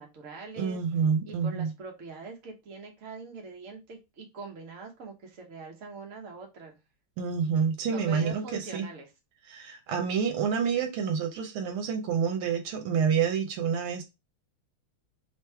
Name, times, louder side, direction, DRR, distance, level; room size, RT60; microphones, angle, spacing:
voice 1, 0.0-0.8 1.2-6.7 7.9-9.1, right 4 dB, 50° right, 1.1 m, -43 dB
voice 2, 0.6-1.7 7.2-8.9 9.5-14.0, right 6 dB, 75° right, 1.6 m, -28 dB
3.6 x 3.1 x 3.3 m
omnidirectional pair, 2.4 m